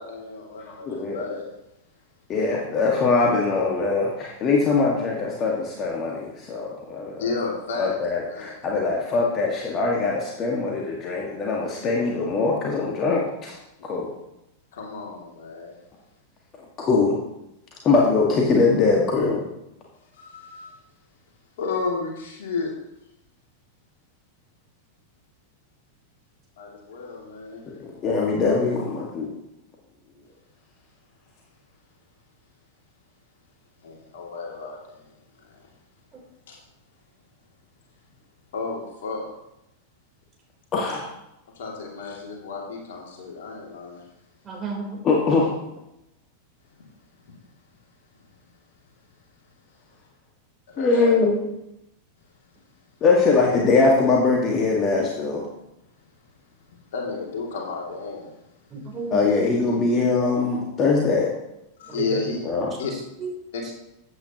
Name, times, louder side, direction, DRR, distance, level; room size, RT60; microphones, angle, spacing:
voice 1, 0.0-1.5 7.2-8.0 8.3-8.5 14.7-15.8 20.1-20.7 21.6-22.7 26.6-27.6 33.8-35.1 35.5-35.6 36.5-36.6 38.5-39.2 41.6-44.0 50.7-50.9 56.9-58.3 59.3-59.4 61.8-62.4 62.8-62.9 63.5-63.6, left 4 dB, 60° left, -1 dB, 2.6 m, -32 dB
voice 2, 0.7-1.2 2.3-7.3 7.8-13.5 13.8-14.1 16.8-17.2 17.8-19.4 27.7-29.3 40.7-41.1 45.0-45.5 50.8-51.3 53.0-55.4 59.1-61.3 62.4-62.7, left 4 dB, 30° left, -2 dB, 1.8 m, -22 dB
voice 3, 44.4-45.0 58.7-59.3 61.9-62.2 62.9-63.3 63.6-63.7, right 4 dB, 20° right, -1 dB, 3.7 m, -32 dB
14.5 x 8.9 x 3.0 m, 0.88 s
figure-of-eight pair, 90°, 0 cm